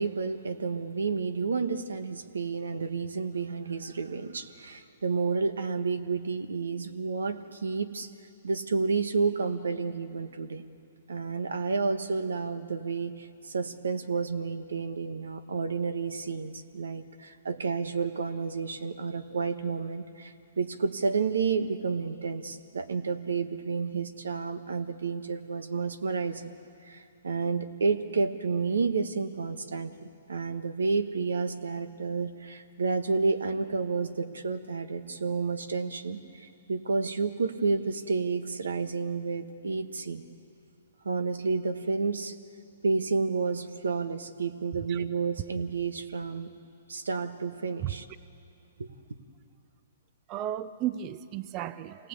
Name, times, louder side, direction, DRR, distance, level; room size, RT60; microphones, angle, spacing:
voice 1, 0.0-8.1 8.4-10.6 11.1-26.5 26.8-29.9 30.3-40.2 41.0-42.3 42.8-46.5 46.9-48.0 48.8-48.9, right 4 dB, 85° right, 9 dB, 1.4 m, -30 dB
voice 2, 50.3-52.1, right 12 dB, 30° right, 14 dB, 0.6 m, -34 dB
26.5 x 18.5 x 8.3 m, 2.6 s
hypercardioid pair, 135°, 0 cm